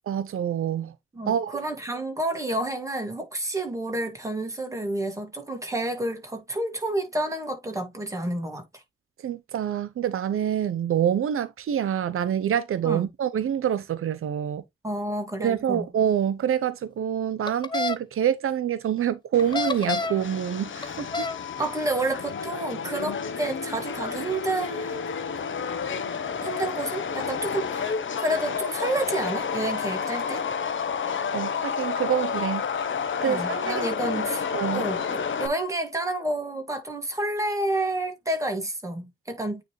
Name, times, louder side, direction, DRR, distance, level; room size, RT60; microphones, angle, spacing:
voice 1, 0.1-0.9 1.3-1.6 9.2-14.6 15.4-21.3 31.3-32.6 33.2-34.2 34.5-34.9, right 9 dB, 90° right, 0.7 m, -26 dB
voice 2, 1.1-8.8 12.8-13.0 14.8-15.9 21.6-25.0 26.4-30.4 33.2-34.4 34.7-39.6, right 1 dB, 15° right, 1.9 m, -30 dB
sound 1, 17.5-18.0 19.4-20.2 20.8-21.4, left 3 dB, 20° left, 0.6 m, -28 dB
Subway metro underground, 19.3-35.5, left 6 dB, 65° left, 0.9 m, -30 dB
9.1 x 3.3 x 3.1 m
wide cardioid pair, 145°, 21 cm